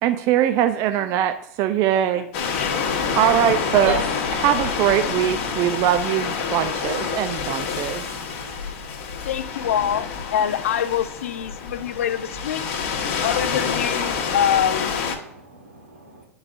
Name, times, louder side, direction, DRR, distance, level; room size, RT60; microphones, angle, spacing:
voice 1, 0.0-2.3 2.7-2.8 3.2-3.9 4.4-8.0, right 11 dB, 45° right, 0.4 m, -21 dB
sound 1, 2.3-15.2, left 6 dB, 55° left, 1.0 m, -27 dB
voice 2, 3.8-4.2 7.7-8.7 12.2-12.7 14.7-16.3, right 3 dB, 80° right, 1.5 m, -36 dB
voice 3, 9.2-12.6 13.2-15.0, left 9 dB, 70° left, 0.4 m, -25 dB
9.7 x 4.7 x 2.5 m
figure-of-eight pair, 90°, 8 cm